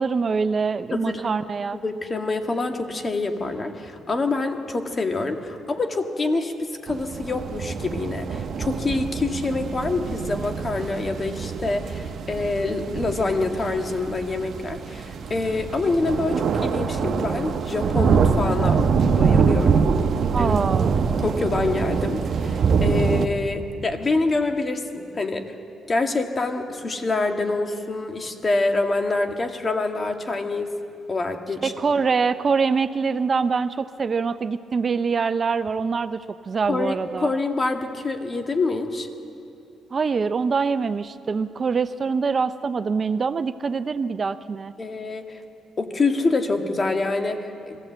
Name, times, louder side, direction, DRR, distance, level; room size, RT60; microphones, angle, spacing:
voice 1, 0.0-1.8 20.3-20.9 31.6-37.3 39.9-44.7, right 5 dB, 40° right, 13 dB, 0.5 m, -24 dB
voice 2, 0.9-1.2 1.8-18.8 19.2-19.9 20.4-20.6 21.2-25.5 25.9-30.7 31.1-31.7 36.6-39.1 44.8-45.4 45.8-47.8, left 3 dB, 35° left, 5 dB, 1.8 m, -26 dB
sound 1, 6.9-23.3, right 5 dB, 55° right, 1.0 m, -24 dB
22.0 x 15.0 x 8.0 m, 2.6 s
cardioid pair, 90°, 0 cm